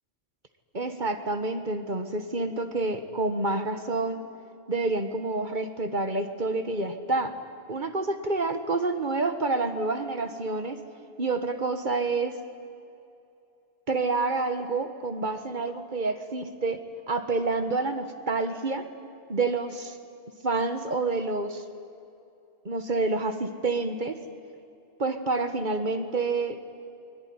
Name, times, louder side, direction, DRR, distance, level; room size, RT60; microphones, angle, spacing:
voice 1, 0.7-4.2 4.7-7.3 7.7-10.8 11.2-12.3 13.9-16.8 17.1-18.8 19.3-19.9 20.4-21.6 22.6-24.2 25.0-26.6, right 3 dB, 45° right, 8 dB, 1.6 m, -28 dB
24.0 x 21.5 x 9.6 m, 2.6 s
omnidirectional pair, 1.2 m